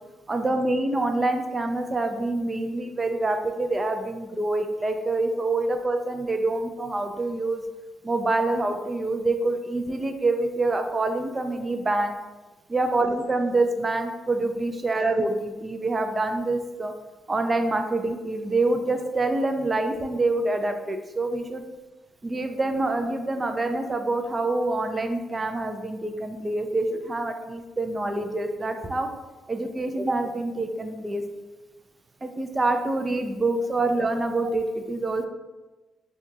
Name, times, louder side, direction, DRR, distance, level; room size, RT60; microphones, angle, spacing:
voice 1, 0.3-7.6 8.0-12.2 12.7-16.9 17.3-21.6 22.2-29.1 29.5-31.3 32.2-35.2, right 2 dB, 25° right, 5 dB, 0.5 m, -26 dB
5.9 x 2.4 x 2.7 m, 1.2 s
cardioid pair, 90°, 0 cm